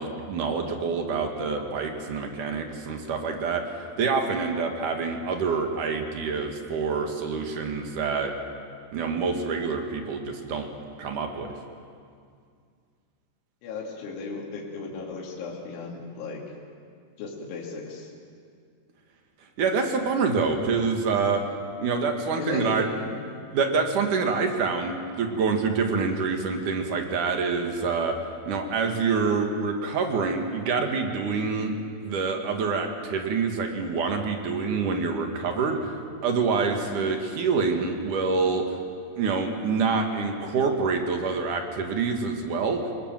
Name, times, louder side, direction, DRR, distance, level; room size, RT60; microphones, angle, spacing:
voice 1, 0.0-8.3 8.9-10.7 11.0-11.5 19.6-21.4 21.8-22.8 23.5-28.2 28.5-31.7 32.0-36.0 36.2-38.8 39.2-42.8, right 4 dB, 55° right, 3 dB, 2.5 m, -26 dB
voice 2, 13.6-16.4 17.2-18.1 22.4-23.2, left 4 dB, 75° left, -3 dB, 4.9 m, -35 dB
27.5 x 20.0 x 7.6 m, 2.2 s
omnidirectional pair, 5.5 m